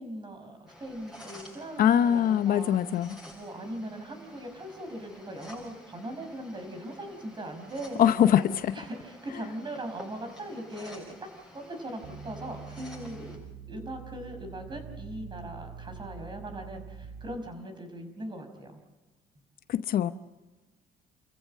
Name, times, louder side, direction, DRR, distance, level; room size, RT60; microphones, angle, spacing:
voice 1, 0.0-2.8 3.3-8.4 8.7-11.0 11.5-13.4 13.7-18.8 19.4-19.5, right 1 dB, 25° right, 6 dB, 5.4 m, -40 dB
sound 1, 0.7-13.4, left 1 dB, ahead, 7.5 m, -51 dB
voice 2, 1.8-3.2 8.0-8.7 19.7-20.1, left 10 dB, 60° left, 12 dB, 0.8 m, -23 dB
sound 2, 12.0-17.4, right 6 dB, 70° right, 3.5 m, -44 dB
29.5 x 15.0 x 7.6 m, 1.2 s
cardioid pair, 110°, 17 cm